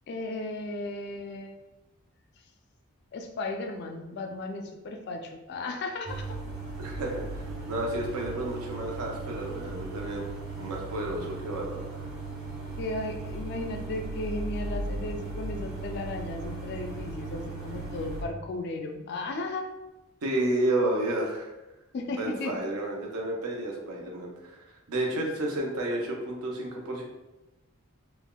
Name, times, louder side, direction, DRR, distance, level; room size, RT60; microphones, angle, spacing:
voice 1, 0.1-1.5 3.1-6.4 12.8-19.7 21.9-22.6, left 2 dB, 50° left, 4 dB, 0.3 m, -35 dB
sound 1, 6.1-18.2, right 3 dB, 45° right, 0.5 m, -37 dB
voice 2, 6.8-10.2 10.6-12.0 20.2-21.5 22.2-24.6 24.9-27.0, right 1 dB, 90° right, -1 dB, 0.6 m, -31 dB
3.3 x 2.2 x 2.2 m, 1.0 s
head